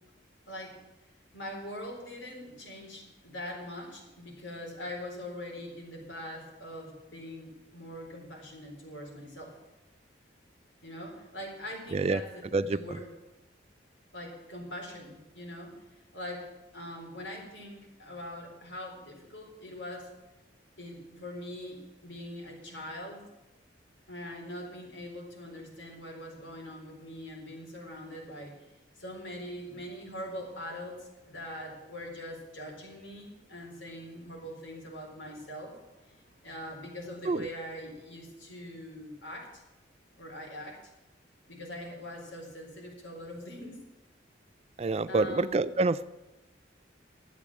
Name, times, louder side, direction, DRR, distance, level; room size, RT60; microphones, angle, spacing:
voice 1, 0.5-0.8 1.3-9.6 10.8-13.1 14.1-15.7 16.1-20.1 20.8-23.3 24.1-28.7 28.9-35.8 36.0-39.6 40.2-40.8 41.5-43.8 45.1-45.6, left 1 dB, 80° left, 0 dB, 4.2 m, -42 dB
voice 2, 44.8-46.1, right 3 dB, 30° right, 16 dB, 0.4 m, -27 dB
12.0 x 8.5 x 7.3 m, 1.1 s
head